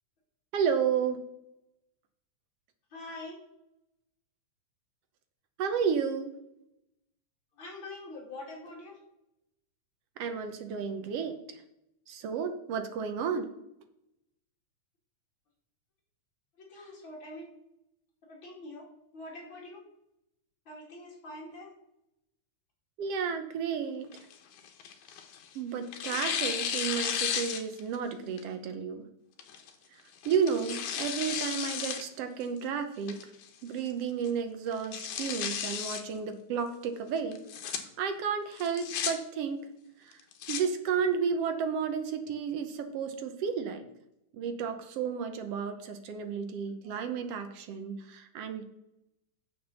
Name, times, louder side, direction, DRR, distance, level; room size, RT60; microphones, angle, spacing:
voice 1, 0.5-1.2 5.6-6.3 10.2-11.3 12.1-13.5 23.0-24.1 25.5-29.0 30.2-33.2 33.6-37.4 38.0-39.6 40.0-40.2 40.5-43.8 44.3-48.6, right 6 dB, 65° right, 7 dB, 1.6 m, -32 dB
voice 2, 2.9-3.4 7.6-9.0 16.6-17.5 18.3-18.9 19.1-19.8 20.7-21.7, left 2 dB, 40° left, -3 dB, 3.5 m, -44 dB
Tearing, 24.1-25.5 25.9-28.0 28.4-28.5 29.4-29.7 30.2-32.0 32.4-32.5 33.1-33.5 33.9-34.0 34.2-34.3 34.7-36.0 37.3-37.8 38.6-39.1 40.1-40.6, left 8 dB, 75° left, 2.4 m, -34 dB
7.2 x 7.0 x 6.7 m, 0.85 s
omnidirectional pair, 3.5 m